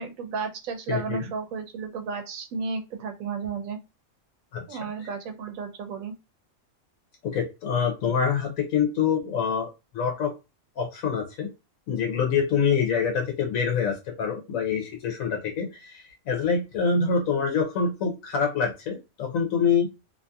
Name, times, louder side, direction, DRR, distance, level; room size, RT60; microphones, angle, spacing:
voice 1, 0.0-3.8 4.7-6.1, right 5 dB, 85° right, 5 dB, 1.1 m, -33 dB
voice 2, 0.9-1.2 4.5-5.1 7.2-10.3 10.8-11.5 11.9-19.9, left 6 dB, 85° left, 2 dB, 1.1 m, -26 dB
2.8 x 2.6 x 2.3 m, 0.26 s
omnidirectional pair, 1.4 m